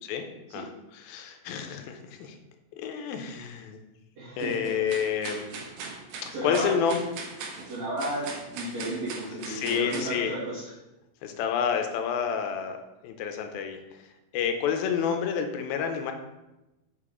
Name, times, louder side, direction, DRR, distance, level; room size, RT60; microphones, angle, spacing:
voice 1, 0.5-2.4 2.8-3.8 4.4-5.5 6.2-7.0 9.3-10.3 11.2-12.8 13.0-13.8 14.3-16.1, left 7 dB, 80° left, 5 dB, 2.3 m, -29 dB
voice 2, 4.2-4.7 6.3-6.7 7.6-10.7, right 1 dB, 50° right, -12 dB, 3.1 m, -33 dB
sound 1, 4.4-10.1, right 4 dB, 85° right, 1.6 m, -40 dB
6.6 x 5.7 x 3.7 m, 0.98 s
omnidirectional pair, 4.5 m